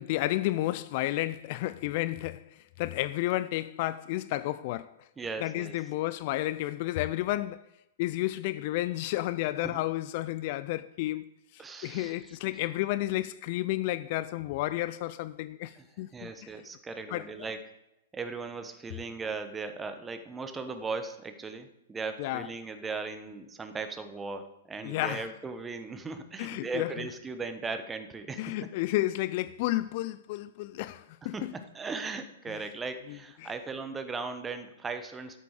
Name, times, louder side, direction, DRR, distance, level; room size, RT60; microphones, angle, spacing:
voice 1, 0.0-5.1 5.4-7.7 8.0-16.5 17.1-17.3 22.2-22.5 24.8-25.3 26.4-27.1 28.4-31.5 32.5-32.7 33.1-33.5, left 16 dB, 45° left, 0.4 m, -32 dB
voice 2, 5.2-5.8 9.6-9.8 11.6-12.2 15.8-15.9 16.1-17.7 18.1-28.7 31.3-35.4, right 4 dB, 15° right, 1.1 m, -38 dB
12.5 x 8.4 x 4.9 m
figure-of-eight pair, 110°, 0 cm